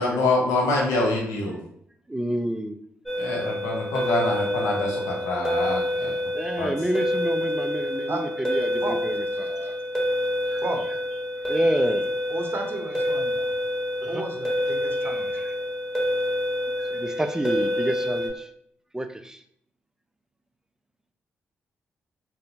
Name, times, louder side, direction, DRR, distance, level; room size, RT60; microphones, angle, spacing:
voice 1, 0.0-1.6 3.2-6.1 6.6-6.7, left 2 dB, 80° left, -1 dB, 0.6 m, -25 dB
voice 2, 2.1-2.8 6.3-9.8 10.5-10.6 10.9-11.0 11.5-12.1 14.0-14.2 15.0-15.6 16.8-18.5 18.9-19.4, right 1 dB, 10° right, 8 dB, 0.3 m, -29 dB
sound 1, 3.1-18.3, left 1 dB, 10° left, 1.2 m, -27 dB
voice 3, 12.3-13.5 14.0-15.3, right 2 dB, 40° right, 3 dB, 0.6 m, -33 dB
2.8 x 2.0 x 2.7 m, 0.67 s
hypercardioid pair, 45°, 6 cm